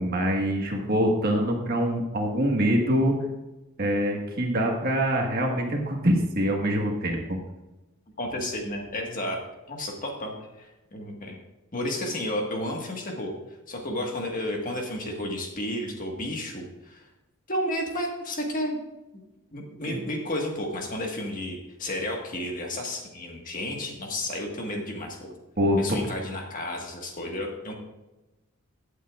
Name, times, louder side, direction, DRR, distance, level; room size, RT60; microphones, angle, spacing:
voice 1, 0.0-3.1 3.8-7.4 19.9-20.0 25.6-25.8, equal, 45° right, 1 dB, 1.6 m, -24 dB
voice 2, 8.2-9.4 9.7-11.4 11.7-13.3 13.7-17.1 17.5-18.8 19.1-19.2 19.5-25.3 25.8-27.7, left 1 dB, 35° left, 1 dB, 1.6 m, -32 dB
16.5 x 8.4 x 2.5 m, 1.0 s
head